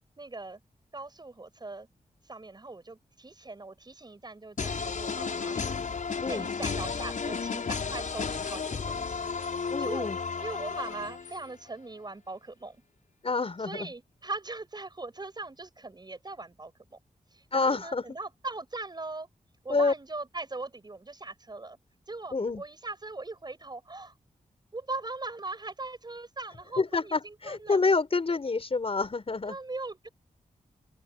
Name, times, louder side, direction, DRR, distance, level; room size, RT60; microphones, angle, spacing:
voice 1, 0.2-0.6 0.9-1.9 2.3-5.8 6.3-10.1 10.4-12.8 13.6-17.0 17.3-19.3 19.6-21.8 22.1-24.1 24.7-27.8 29.5-30.1, right 3 dB, 30° right, 7.5 m, -40 dB
sound 1, 4.6-11.5, left 5 dB, 65° left, 6.5 m, -33 dB
voice 2, 9.7-10.2 13.2-13.9 17.5-18.0 19.7-19.9 22.3-22.6 26.8-29.6, left 4 dB, 40° left, 6.6 m, -27 dB
open air
wide cardioid pair, 95°, 14 cm